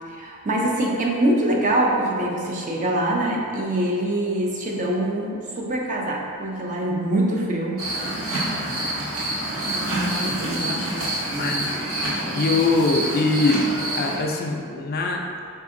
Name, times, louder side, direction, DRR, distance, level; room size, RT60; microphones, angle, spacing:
voice 1, 0.1-7.8 10.2-11.7, right 1 dB, 35° right, -1 dB, 0.5 m, -24 dB
sound 1, 7.8-14.2, right 1 dB, 65° right, 1.0 m, -27 dB
voice 2, 10.6-10.9 11.4-11.7 12.3-13.7 14.0-15.6, left 3 dB, 40° left, 1 dB, 0.3 m, -23 dB
4.2 x 2.6 x 3.6 m, 2.3 s
head